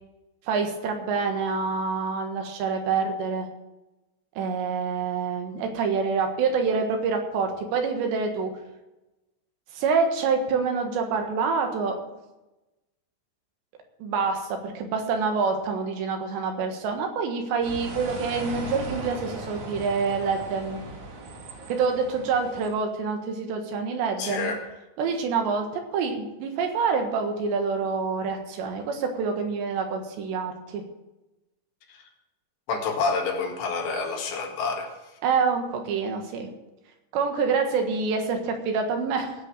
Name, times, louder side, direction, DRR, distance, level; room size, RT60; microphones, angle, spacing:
voice 1, 0.5-3.5 4.4-8.5 9.7-12.0 14.0-20.8 21.7-24.5 25.0-30.8 35.2-36.5 37.1-39.3, right 5 dB, 80° right, 4 dB, 3.8 m, -26 dB
sound 1, 17.6-22.7, right 2 dB, 50° right, 3.8 m, -38 dB
voice 2, 24.2-24.6 31.9-32.1 32.7-35.2, left 4 dB, 75° left, 1 dB, 4.1 m, -28 dB
16.5 x 6.6 x 7.6 m, 1.0 s
omnidirectional pair, 5.0 m